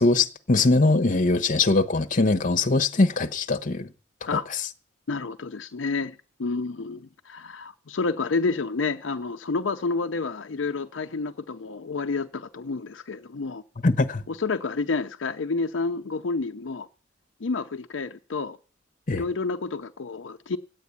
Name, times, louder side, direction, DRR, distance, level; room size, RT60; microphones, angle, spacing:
voice 1, 0.0-3.9 4.3-4.4 13.8-14.2 19.1-19.2, left 3 dB, 45° left, 0.9 m, -21 dB
voice 2, 5.1-13.6 14.3-16.9 17.4-18.6 19.1-20.6, left 4 dB, 75° left, 0.6 m, -29 dB
9.5 x 8.4 x 9.4 m
head